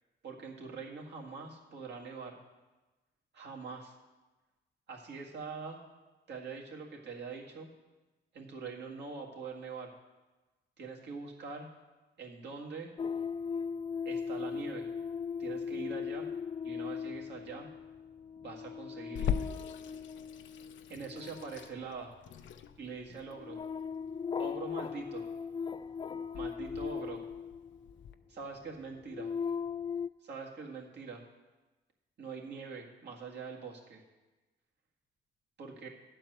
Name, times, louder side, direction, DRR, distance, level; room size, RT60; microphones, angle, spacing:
voice 1, 0.2-2.4 3.3-4.0 4.9-5.8 6.3-7.7 8.3-9.9 10.8-11.7 12.2-12.9 14.1-14.9 15.4-16.3 16.6-17.7 18.4-19.4 20.9-22.1 22.8-23.6 24.4-25.3 26.3-27.2 28.3-29.4 30.2-31.2 32.2-34.0 35.6-35.9, right 4 dB, 60° right, -1 dB, 1.9 m, -43 dB
sound 1, 13.0-28.1 28.7-30.1, left 6 dB, 25° left, 0.3 m, -38 dB
Water tap faucet / Sink (filling or washing), 19.1-28.1, left 8 dB, 70° left, 0.6 m, -41 dB
11.0 x 4.5 x 7.8 m, 1.2 s
cardioid pair, 90°, 20 cm